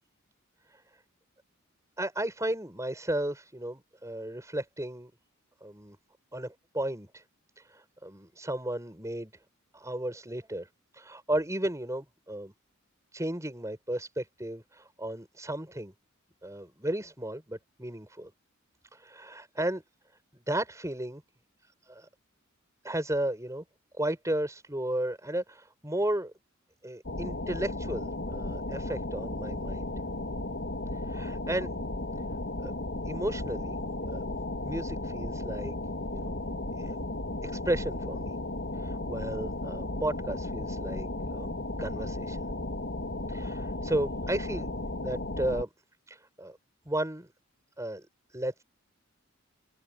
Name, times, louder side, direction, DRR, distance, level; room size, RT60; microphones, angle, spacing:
voice 1, 2.0-5.1 5.6-6.0 6.3-7.2 7.6-9.3 9.7-10.7 10.9-12.5 13.1-15.9 16.4-18.3 18.9-19.8 20.3-21.2 21.9-22.1 22.8-23.6 23.9-26.3 26.8-29.9 31.1-31.7 32.6-32.7 33.1-33.8 34.1-34.3 34.6-35.7 36.1-36.4 36.8-37.0 37.4-38.4 38.8-41.5 41.8-42.5 43.3-44.7 45.0-45.7 46.1-46.6 46.8-47.3 47.8-48.1 48.3-48.6, right 1 dB, 15° right, 6.5 m, -34 dB
sound 1, 27.0-45.6, left 2 dB, 55° left, 2.6 m, -35 dB
head